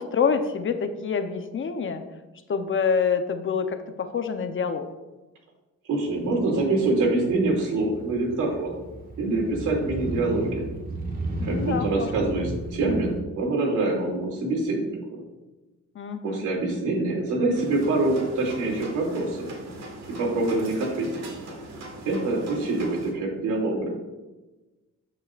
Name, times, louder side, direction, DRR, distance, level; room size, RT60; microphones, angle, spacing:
voice 1, 0.0-2.0 2.5-4.8 11.4-12.1 15.9-16.4, left 6 dB, 40° left, 8 dB, 0.8 m, -26 dB
voice 2, 5.9-8.7 9.2-10.7 11.4-15.2 16.2-19.4 20.2-21.2 22.0-23.9, right 2 dB, 80° right, -1 dB, 2.8 m, -25 dB
Motorcycle, 6.1-13.2, right 1 dB, 30° right, 1.7 m, -34 dB
sound 1, 17.5-23.1, right 2 dB, 60° right, 2.0 m, -40 dB
13.0 x 5.5 x 2.5 m, 1.1 s
cardioid pair, 90°, 30 cm